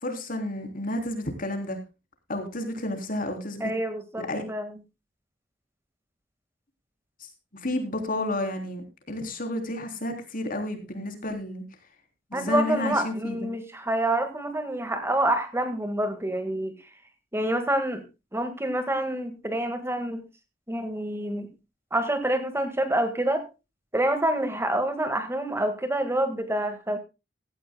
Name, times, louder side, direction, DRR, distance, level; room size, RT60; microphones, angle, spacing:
voice 1, 0.0-1.8 2.3-3.7 4.2-4.4 7.6-11.6 12.3-13.5, left 1 dB, 45° left, 6 dB, 3.5 m, -31 dB
voice 2, 3.6-4.7 12.3-16.7 17.3-18.0 18.3-20.2 20.7-21.5 21.9-23.5 23.9-27.0, right 1 dB, 15° right, 9 dB, 1.8 m, -27 dB
16.5 x 14.5 x 2.2 m, 0.28 s
head